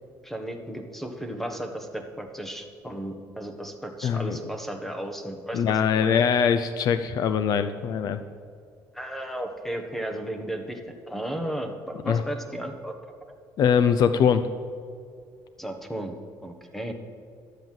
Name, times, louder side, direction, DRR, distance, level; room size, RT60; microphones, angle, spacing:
voice 1, 0.2-6.1 8.9-10.8 11.1-12.9 15.6-16.1 16.4-16.9, right 1 dB, 5° left, 5 dB, 1.4 m, -34 dB
voice 2, 4.0-4.4 5.5-8.2 12.1-12.2 13.6-14.5, left 7 dB, 55° left, 11 dB, 0.6 m, -22 dB
12.5 x 8.0 x 7.5 m, 2.3 s
cardioid pair, 125°, 8 cm